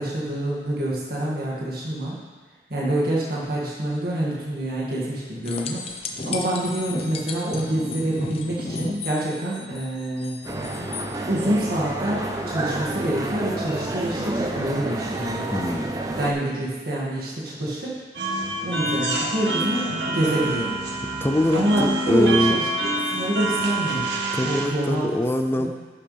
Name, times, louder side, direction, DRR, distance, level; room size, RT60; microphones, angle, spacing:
voice 1, 0.0-2.2 2.7-5.9 6.3-10.4 11.3-15.5 16.1-18.0 18.6-20.8 21.5-22.7 23.1-25.2 25.5-25.7, right 1 dB, 60° right, -6 dB, 2.2 m, -26 dB
sound 1, 5.4-11.1 14.0-14.1, left 3 dB, 35° left, 0.8 m, -34 dB
sound 2, 10.4-16.3, right 1 dB, 20° right, 0.8 m, -29 dB
voice 2, 15.5-15.9 21.2-22.6 24.3-25.7, left 1 dB, 15° left, 7 dB, 0.5 m, -23 dB
sound 3, 18.1-24.7, right 2 dB, 75° right, 1.3 m, -27 dB
11.0 x 8.4 x 3.4 m, 1.4 s
head